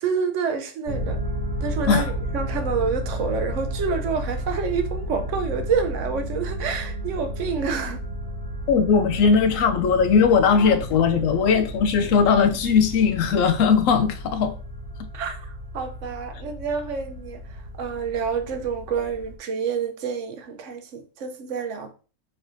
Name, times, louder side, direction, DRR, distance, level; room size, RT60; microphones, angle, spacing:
voice 1, 0.0-1.2 1.6-8.0 15.1-21.9, right 5 dB, 75° right, 1.0 m, -28 dB
sound 1, 0.8-19.4, right 1 dB, 50° right, 1.4 m, -33 dB
voice 2, 8.7-14.6, left 6 dB, 80° left, 1.0 m, -19 dB
4.3 x 3.4 x 2.6 m
omnidirectional pair, 1.3 m